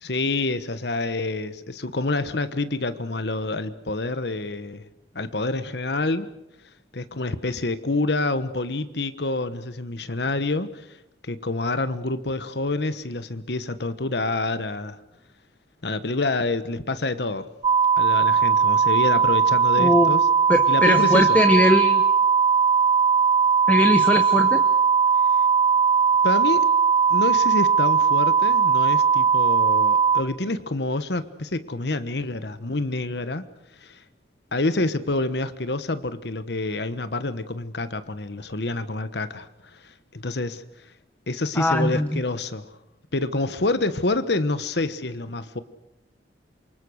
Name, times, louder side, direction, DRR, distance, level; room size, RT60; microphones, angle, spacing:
voice 1, 0.0-4.9 5.1-6.3 6.9-10.9 11.2-15.0 15.8-17.5 18.0-20.3 20.7-21.4 26.2-26.7 27.1-33.4 33.8-34.0 34.5-39.5 40.1-40.6 41.3-42.7 43.1-45.6, left 2 dB, 70° left, 12 dB, 1.3 m, -27 dB
sound 1, 17.6-30.2, right 6 dB, 25° right, 1.0 m, -19 dB
voice 2, 19.8-20.1 20.5-22.0 23.7-24.6 41.5-42.2, left 1 dB, 10° left, 8 dB, 1.0 m, -20 dB
27.5 x 24.5 x 6.4 m, 0.81 s
head